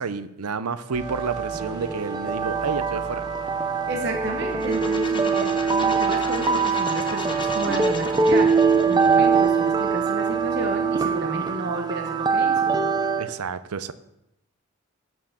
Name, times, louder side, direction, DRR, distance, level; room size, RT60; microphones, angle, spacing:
voice 1, 0.0-3.2 8.9-9.1 13.2-13.9, right 5 dB, 90° right, 13 dB, 0.7 m, -30 dB
sound 1, 0.9-9.4, left 2 dB, 85° left, 1.7 m, -45 dB
sound 2, 0.9-13.3, right 5 dB, 20° right, 0.5 m, -23 dB
voice 2, 3.9-8.5 8.8-12.7, right 2 dB, 50° right, 3 dB, 1.1 m, -32 dB
sound 3, 4.5-10.3, left 3 dB, 20° left, 0.9 m, -36 dB
11.5 x 4.7 x 7.4 m, 0.85 s
head